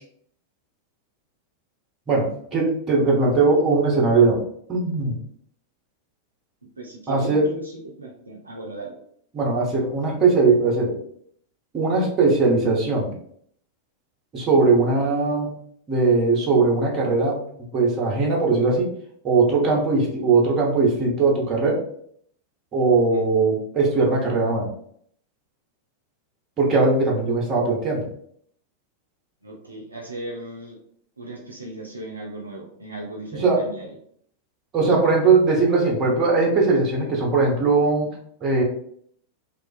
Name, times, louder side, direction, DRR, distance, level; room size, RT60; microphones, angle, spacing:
voice 1, 2.5-4.4 4.7-5.2 7.1-7.5 9.3-11.0 11.7-13.1 14.3-15.5 15.9-17.4 17.7-18.9 19.2-21.8 22.7-24.7 26.6-28.0 33.4-33.6 34.7-38.1 38.4-38.6, right 3 dB, 30° right, -2 dB, 0.8 m, -19 dB
voice 2, 6.8-8.9 23.1-23.5 29.4-30.8 31.2-33.9, right 2 dB, 80° right, -1 dB, 0.4 m, -37 dB
2.4 x 2.3 x 2.4 m, 0.65 s
figure-of-eight pair, 90°, 0 cm